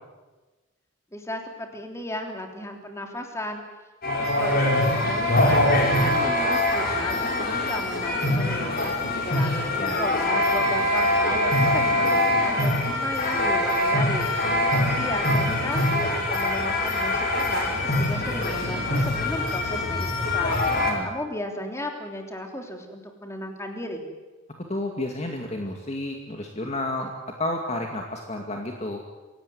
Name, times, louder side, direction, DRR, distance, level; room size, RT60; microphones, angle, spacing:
voice 1, 1.1-3.6 4.2-5.7 5.9-9.0 9.2-20.6 21.0-24.0, left 1 dB, 15° left, 3 dB, 3.4 m, -35 dB
sound 1, 4.0-20.9, left 1 dB, 50° left, 4.9 m, -23 dB
voice 2, 20.7-21.1 24.7-29.0, left 1 dB, 35° left, 2 dB, 2.3 m, -31 dB
26.0 x 18.0 x 9.6 m, 1.2 s
head